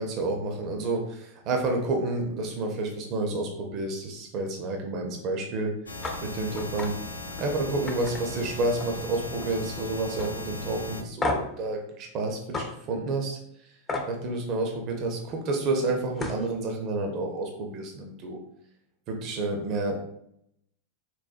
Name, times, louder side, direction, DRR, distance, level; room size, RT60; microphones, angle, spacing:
voice 1, 0.0-5.7 6.2-7.0 7.4-13.8 14.1-18.4 19.1-20.0, right 2 dB, 40° right, 2 dB, 0.5 m, -30 dB
sound 1, 5.9-11.0, left 2 dB, 85° left, 0.4 m, -38 dB
sound 2, 6.0-6.2 6.6-6.9 7.3-7.5 7.9-9.0 9.3-9.7 10.2-10.3 11.2-11.6 12.5-12.7 13.9-14.1 15.8-15.9 16.2-16.5, left 2 dB, 20° left, 0.4 m, -31 dB
3.9 x 2.1 x 2.4 m, 0.74 s
figure-of-eight pair, 90°, 0 cm